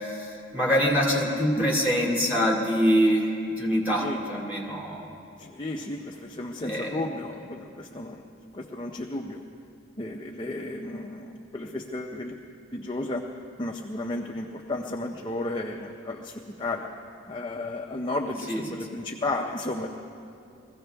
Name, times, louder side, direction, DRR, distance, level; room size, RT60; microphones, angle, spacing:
voice 1, 0.2-5.1 6.6-7.1 18.5-18.6, equal, 10° right, -3 dB, 2.4 m, -24 dB
voice 2, 5.4-8.2 8.5-9.4 10.0-12.4 12.7-13.2 13.6-16.9 17.3-19.9, left 2 dB, 25° left, 0 dB, 0.6 m, -33 dB
22.0 x 15.5 x 3.4 m, 2.6 s
head